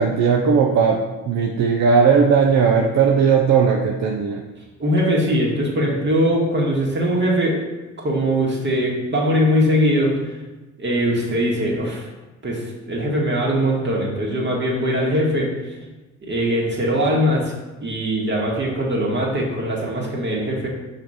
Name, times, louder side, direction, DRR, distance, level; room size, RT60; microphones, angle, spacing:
voice 1, 0.0-4.4, right 6 dB, 60° right, 2 dB, 0.7 m, -17 dB
voice 2, 4.8-7.6 8.0-10.3 10.8-12.1 12.4-15.5 16.2-17.5 17.8-20.7, equal, 35° right, -2 dB, 2.0 m, -21 dB
5.7 x 4.5 x 5.0 m, 1.2 s
cardioid pair, 90°, 30 cm